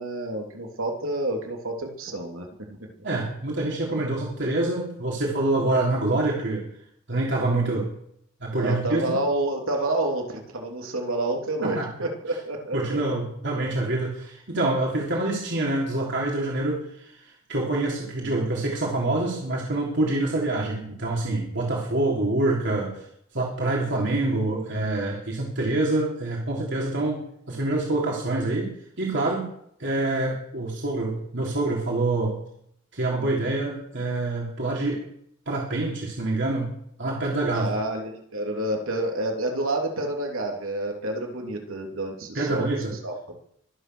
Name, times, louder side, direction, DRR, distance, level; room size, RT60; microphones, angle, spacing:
voice 1, 0.0-2.8 8.5-13.0 37.5-42.7 43.0-43.4, right 1 dB, 80° right, 1 dB, 3.3 m, -29 dB
voice 2, 3.0-6.6 7.1-7.9 8.4-9.2 11.6-11.9 12.7-17.2 17.5-23.0 23.3-27.2 27.5-28.7 29.0-29.5 29.8-32.4 32.9-35.0 35.5-36.7 37.0-37.7 42.4-42.9, right 2 dB, 60° right, -3 dB, 3.4 m, -26 dB
23.5 x 9.2 x 6.3 m, 0.71 s
head